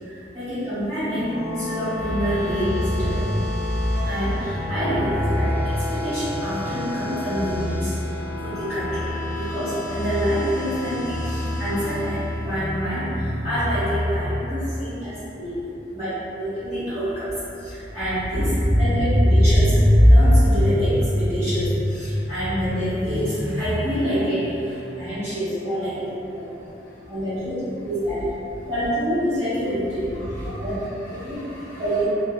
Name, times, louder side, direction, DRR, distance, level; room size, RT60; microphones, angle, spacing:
voice 1, 0.1-3.4 4.0-15.6 15.9-26.5 27.1-28.3 28.7-30.7 31.1-31.4 31.8-32.1, equal, 35° right, -16 dB, 1.1 m, -23 dB
sound 1, 0.9-13.3, left 2 dB, 50° right, 0.5 m, -32 dB
voice 2, 24.8-25.1 26.5-27.1 28.6-28.7 30.1-32.0, equal, 75° left, -9 dB, 0.5 m, -43 dB
2.7 x 2.4 x 2.3 m, 2.9 s
head